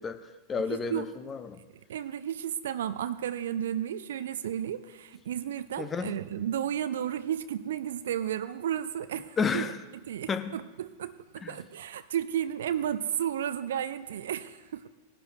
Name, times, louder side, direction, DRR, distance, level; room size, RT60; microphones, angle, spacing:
voice 1, 0.0-1.6 5.8-6.1 9.4-9.8 10.3-10.5 11.4-11.6, left 5 dB, 20° left, 9 dB, 0.8 m, -31 dB
voice 2, 0.7-1.1 1.9-9.7 10.1-14.9, right 10 dB, 60° right, 14 dB, 0.5 m, -33 dB
19.0 x 11.5 x 2.7 m, 1.2 s
figure-of-eight pair, 90°, 0 cm